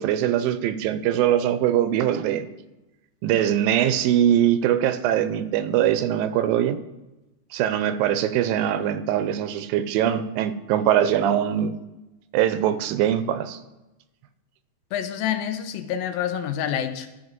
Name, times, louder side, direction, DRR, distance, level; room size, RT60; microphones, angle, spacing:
voice 1, 0.0-2.5 3.2-6.8 7.5-11.8 12.3-13.6, right 10 dB, 80° right, 12 dB, 2.3 m, -22 dB
voice 2, 14.9-17.1, left 9 dB, 85° left, 9 dB, 2.4 m, -27 dB
14.0 x 4.8 x 5.1 m, 1.0 s
omnidirectional pair, 4.2 m